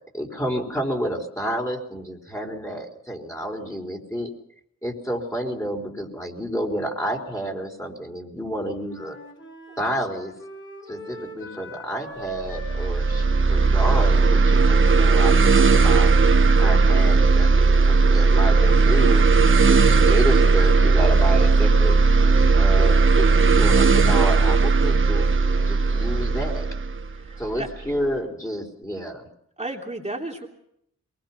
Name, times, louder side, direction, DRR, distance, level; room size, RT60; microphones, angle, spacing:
voice 1, 0.1-4.3 4.8-9.2 9.8-10.3 10.9-16.1 16.6-17.5 17.9-19.2 19.6-22.0 22.5-25.3 25.7-26.7 27.4-29.3, equal, 10° left, 1 dB, 4.4 m, -30 dB
Wind instrument woodwind instrument, 8.8-17.0, equal, 40° left, 6.6 m, -42 dB
sound 1, 12.4-27.8, right 4 dB, 40° right, 1.3 m, -17 dB
voice 2, 27.1-27.7 29.6-30.5, right 2 dB, 20° right, 0 dB, 3.0 m, -33 dB
23.0 x 21.0 x 5.9 m, 0.73 s
cardioid pair, 75°, 30 cm